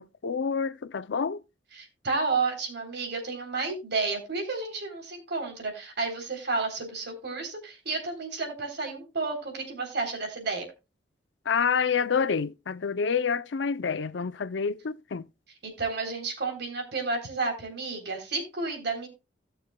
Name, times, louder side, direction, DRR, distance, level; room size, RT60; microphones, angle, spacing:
voice 1, 0.0-1.4 11.5-15.3, left 6 dB, 70° left, 0.5 m, -28 dB
voice 2, 1.7-10.7 15.6-19.1, right 4 dB, 65° right, 3.5 m, -31 dB
17.0 x 6.7 x 2.2 m
head